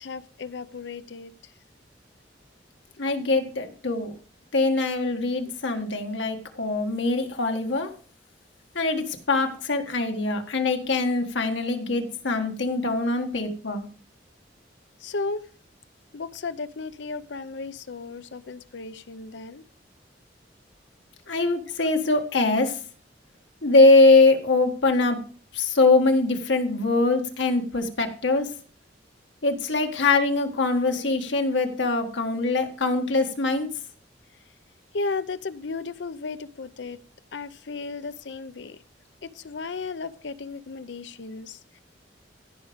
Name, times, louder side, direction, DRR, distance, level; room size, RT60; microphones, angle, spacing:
voice 1, 0.0-1.5 15.0-15.5 16.1-19.6 34.9-37.0 37.3-38.8 39.2-41.8, left 3 dB, 70° left, 14 dB, 0.6 m, -34 dB
voice 2, 3.0-4.1 4.5-7.9 8.7-13.9 21.3-22.8 23.6-25.2 25.5-28.5 29.4-33.7, left 3 dB, 90° left, 5 dB, 1.6 m, -22 dB
15.0 x 5.1 x 5.0 m, 0.43 s
head